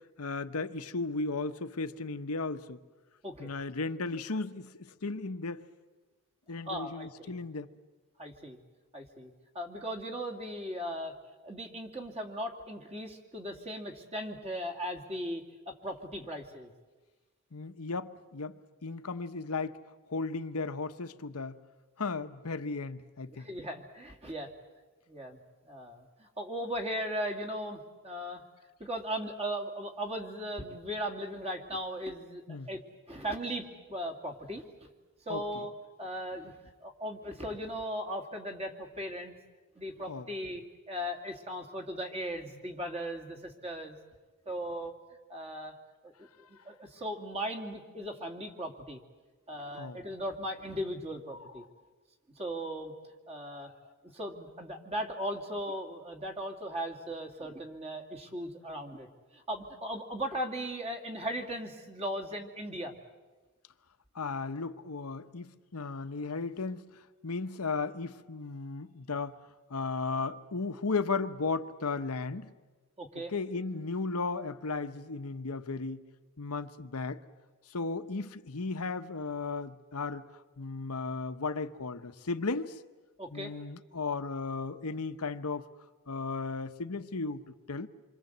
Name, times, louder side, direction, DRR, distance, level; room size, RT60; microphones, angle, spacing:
voice 1, 0.2-2.8 3.4-5.6 6.5-7.7 17.5-19.8 20.1-21.6 22.0-23.5 32.5-32.7 35.3-35.6 40.1-40.3 49.7-50.0 53.6-53.9 64.1-66.9 67.2-69.4 69.7-72.5 73.3-76.0 76.4-77.2 77.7-80.3 80.6-82.8 83.3-85.6 86.1-87.4 87.7-87.9, left 3 dB, 80° left, 1.0 m, -35 dB
voice 2, 6.7-7.3 8.2-8.6 8.9-11.2 11.4-16.7 23.3-24.5 25.1-28.4 28.8-32.8 33.1-34.9 35.3-35.7 36.0-39.3 39.7-44.0 44.5-44.9 45.3-45.7 46.0-49.0 49.5-51.6 52.4-52.9 53.3-53.7 54.1-63.0 73.0-73.3 83.2-83.5, equal, 30° right, 2.5 m, -38 dB
27.5 x 24.5 x 8.0 m
head